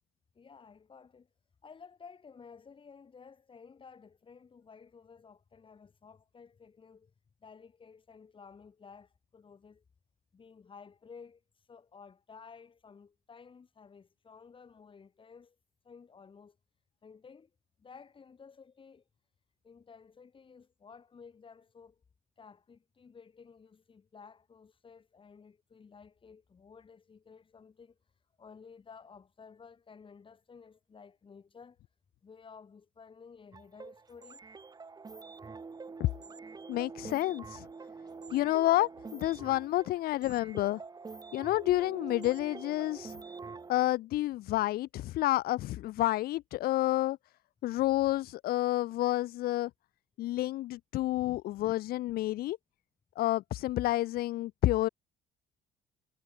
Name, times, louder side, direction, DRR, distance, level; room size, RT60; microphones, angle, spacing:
voice 1, 0.3-1.3 1.6-7.1 7.4-9.8 10.3-15.6 15.8-16.6 17.0-17.5 17.8-19.1 19.6-22.0 22.4-31.8 32.2-34.4 51.5-51.6, left 5 dB, 30° left, 2.9 m, -54 dB
sound 1, 33.5-43.7, right 4 dB, 25° right, 2.2 m, -46 dB
voice 2, 36.7-37.7 38.3-40.8 41.3-43.2 43.7-47.2 47.6-49.7 50.2-52.6 53.2-54.9, left 16 dB, 65° left, 0.5 m, -29 dB
cardioid pair, 110°, 17 cm